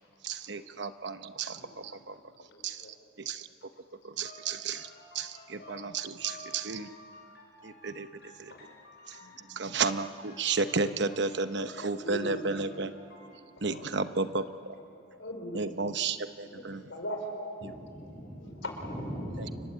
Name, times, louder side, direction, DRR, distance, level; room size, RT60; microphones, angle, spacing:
voice 1, 0.2-2.2 2.6-2.9 3.2-3.5 4.0-4.9 5.1-6.9 7.6-8.1 8.4-8.5 9.1-9.2 9.5-12.9 13.6-14.7 15.5-16.8 17.6-17.7 19.4-19.5, right 4 dB, 60° right, 10 dB, 1.0 m, -32 dB
voice 2, 2.5-2.9 5.2-5.3 8.5-8.6 9.3-9.4 11.8-12.6 13.2-13.9 14.9-15.6 16.5-17.4 18.4-18.7, equal, 70° left, 3 dB, 4.9 m, -41 dB
sound 1, 4.2-13.3, left 1 dB, 55° left, 7.0 m, -52 dB
voice 3, 17.6-19.6, equal, 10° left, -4 dB, 6.3 m, -40 dB
29.5 x 23.0 x 8.7 m, 2.6 s
head